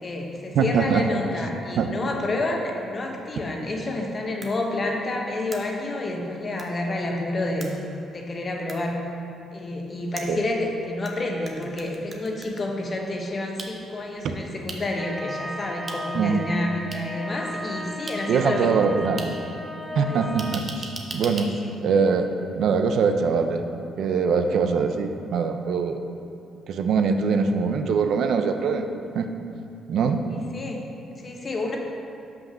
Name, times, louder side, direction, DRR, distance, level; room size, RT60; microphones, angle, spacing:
voice 1, 0.0-7.7 8.1-9.1 9.5-18.9 20.0-20.2 30.5-30.8 31.2-31.8, left 2 dB, 35° left, 1 dB, 1.1 m, -29 dB
voice 2, 0.5-1.0 1.8-1.9 10.3-10.4 14.2-14.3 16.1-16.4 18.3-19.3 20.0-21.5 21.8-22.3 22.6-23.6 24.0-26.0 26.7-29.3 29.9-30.2, right 5 dB, 70° right, 7 dB, 0.5 m, -23 dB
sound 1, 4.4-4.5 5.5-5.6 6.6-6.7 7.6-7.7 8.7-8.8 10.2-11.1 11.5-12.6 13.6-13.7 14.7-14.8 15.9-16.0 16.9-17.0 18.1-18.2 19.2-19.3 20.4-21.5, right 3 dB, 40° right, 0.9 m, -37 dB
sound 2, 15.0-20.6, equal, ahead, 0.7 m, -35 dB
5.8 x 5.2 x 6.1 m, 2.6 s
cardioid pair, 90°, 0 cm